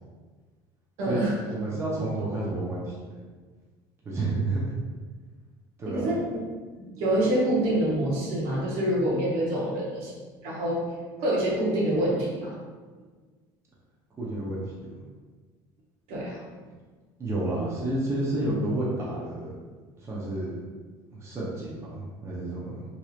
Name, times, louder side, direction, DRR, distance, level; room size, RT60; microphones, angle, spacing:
voice 1, 1.0-1.4 5.8-6.2 6.7-10.1 10.4-10.8 11.2-12.5 16.1-16.4, right 1 dB, 70° right, -5 dB, 1.1 m, -26 dB
voice 2, 1.5-2.9 4.0-4.8 5.8-6.0 14.2-14.9 17.2-19.5 20.0-20.6 21.1-22.8, right 2 dB, 25° right, -6 dB, 0.7 m, -30 dB
3.1 x 2.7 x 2.4 m, 1.4 s
cardioid pair, 115°, 10 cm